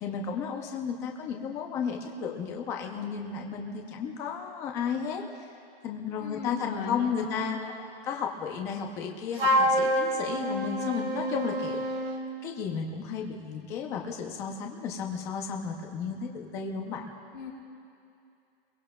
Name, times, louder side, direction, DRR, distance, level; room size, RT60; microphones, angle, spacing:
voice 1, 0.0-5.2 5.8-7.6 8.0-11.8 12.4-17.1, left 6 dB, 10° left, 2 dB, 0.5 m, -33 dB
voice 2, 6.2-7.7 17.3-17.5, left 6 dB, 30° left, -7 dB, 3.8 m, -37 dB
Wind instrument woodwind instrument, 9.4-12.2, equal, 75° right, 1.8 m, -27 dB
29.0 x 22.5 x 2.2 m, 2.6 s
hypercardioid pair, 170°, 30 cm